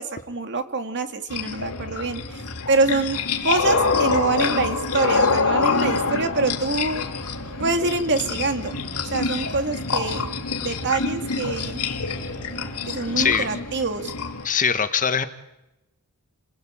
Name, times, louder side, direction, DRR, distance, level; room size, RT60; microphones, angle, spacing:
voice 1, 0.0-2.2 2.7-3.2 3.4-7.1 7.6-8.8 9.1-10.3 10.6-11.8 12.9-14.1, right 3 dB, 55° right, 7 dB, 2.2 m, -25 dB
sound 1, 1.3-14.5, left 4 dB, 85° left, 2.4 m, -26 dB
sound 2, 5.8-13.4, right 2 dB, 90° right, 6.4 m, -43 dB
voice 2, 13.2-13.5 14.4-15.3, left 6 dB, 35° left, 9 dB, 1.5 m, -21 dB
29.5 x 20.0 x 9.0 m, 0.93 s
head